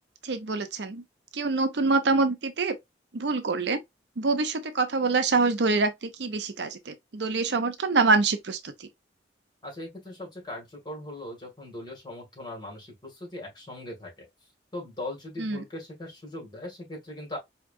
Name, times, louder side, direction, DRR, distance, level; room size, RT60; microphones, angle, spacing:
voice 1, 0.2-1.0 1.3-2.8 3.1-3.8 4.2-8.7 15.4-15.6, right 3 dB, 70° right, 0.6 m, -25 dB
voice 2, 9.6-14.3 14.7-17.4, left 1 dB, 25° left, 2.2 m, -39 dB
4.8 x 2.9 x 2.5 m
head